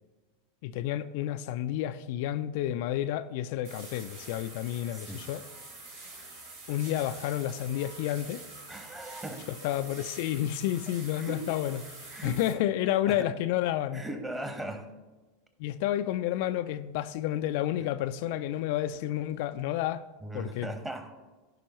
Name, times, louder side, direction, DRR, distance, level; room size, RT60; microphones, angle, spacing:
voice 1, 0.6-5.4 6.7-8.4 9.6-11.8 12.2-14.0 15.6-20.1 20.3-20.7, left 12 dB, 60° left, 0.3 m, -30 dB
sound 1, 3.6-12.5, right 2 dB, 70° right, 2.4 m, -46 dB
voice 2, 4.9-5.3 8.7-9.5 11.1-11.5 12.1-12.4 13.1-13.3 13.9-14.9 17.8-17.9 18.2-18.3 20.2-21.1, right 1 dB, 15° right, 1.3 m, -39 dB
15.5 x 5.3 x 3.0 m
hypercardioid pair, 90°, 0 cm